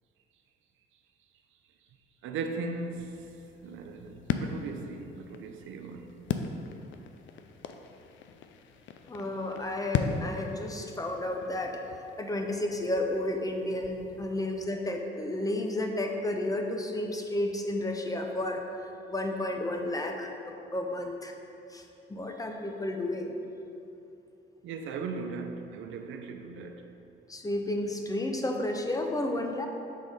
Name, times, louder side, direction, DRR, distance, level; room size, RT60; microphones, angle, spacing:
voice 1, 2.2-3.3 3.6-6.4 14.3-14.4 24.6-26.9, right 4 dB, 80° right, 5 dB, 0.5 m, -38 dB
sound 1, 2.9-14.7, left 6 dB, 75° left, 0.4 m, -38 dB
voice 2, 9.1-11.8 12.2-18.6 19.1-21.3 21.7-21.8 22.1-23.4 27.3-29.7, left 1 dB, 15° left, 3 dB, 0.7 m, -32 dB
6.4 x 3.8 x 5.3 m, 2.8 s
cardioid pair, 90°, 20 cm